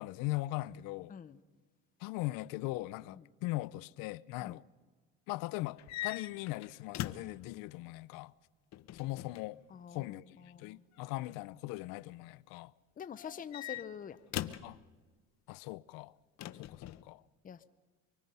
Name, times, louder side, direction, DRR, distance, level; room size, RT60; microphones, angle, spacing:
voice 1, 0.0-1.1 2.0-4.6 5.3-8.3 8.9-9.6 9.9-12.7 14.6-14.8 15.5-16.1 16.5-17.2, left 19 dB, 85° left, 0.6 m, -40 dB
sound 1, 5.8-7.4 8.7-9.5 11.0-11.4 13.2-14.8 16.4-17.0, left 14 dB, 55° left, 0.9 m, -41 dB
voice 2, 9.7-10.1 10.5-10.8 13.0-14.2 17.4-17.6, left 8 dB, 25° left, 0.7 m, -45 dB
24.5 x 24.0 x 5.5 m
cardioid pair, 130°, 33 cm